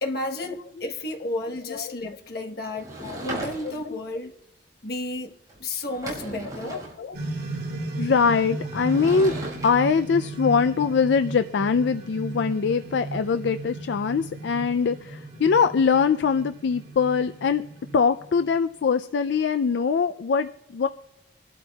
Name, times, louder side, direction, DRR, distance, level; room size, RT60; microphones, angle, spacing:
voice 1, 0.0-4.3 4.8-5.3 5.6-6.8, left 2 dB, 60° left, 1.2 m, -32 dB
Sliding door / Wood, 2.8-4.0 5.5-5.6 5.8-7.0 8.7-9.7, right 2 dB, 20° right, 5.3 m, -36 dB
sound 1, 7.1-18.6, right 2 dB, 60° right, 2.8 m, -35 dB
voice 2, 8.0-9.4 9.6-17.6 17.9-20.9, left 5 dB, 75° left, 0.4 m, -23 dB
24.5 x 12.0 x 2.3 m
head